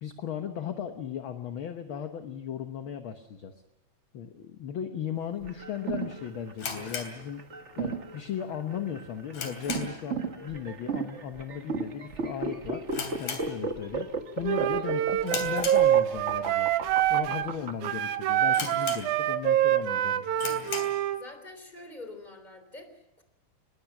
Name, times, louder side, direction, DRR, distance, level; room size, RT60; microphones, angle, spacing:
voice 1, 0.0-3.5 4.1-7.4 7.8-12.9 13.2-14.1 14.4-16.7 17.1-20.4, left 8 dB, 55° left, 7 dB, 1.5 m, -36 dB
sound 1, 5.4-17.9, right 4 dB, 35° right, 1.2 m, -34 dB
sound 2, 6.5-7.9 8.2-8.3 8.8-10.2 10.4-10.7 11.0-11.1 11.8-12.1 12.4-12.5 12.9-14.0 14.4-14.7 15.2-16.3 16.9-17.0 17.6-17.7 18.0-18.1 18.5-19.5 19.8-19.9 20.3-21.0, left 5 dB, 80° left, 4.4 m, -37 dB
Wind instrument woodwind instrument, 14.4-17.5 17.8-21.2, right 12 dB, 85° right, 2.4 m, -26 dB
voice 2, 21.2-23.2, left 2 dB, 15° left, 8 dB, 3.4 m, -46 dB
26.0 x 21.0 x 6.0 m, 0.95 s
omnidirectional pair, 3.4 m